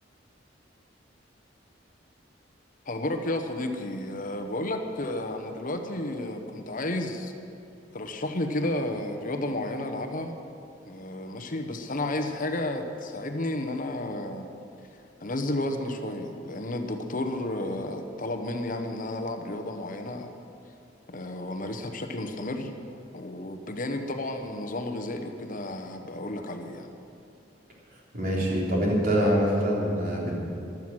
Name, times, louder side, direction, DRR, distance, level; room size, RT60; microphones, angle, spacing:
voice 1, 2.9-7.3 7.9-10.3 10.8-14.5 15.2-20.3 21.1-22.7 23.1-26.9, left 1 dB, 45° left, 6 dB, 1.0 m, -32 dB
voice 2, 28.1-30.3, equal, 50° right, -4 dB, 3.7 m, -24 dB
15.0 x 12.0 x 6.2 m, 2.6 s
head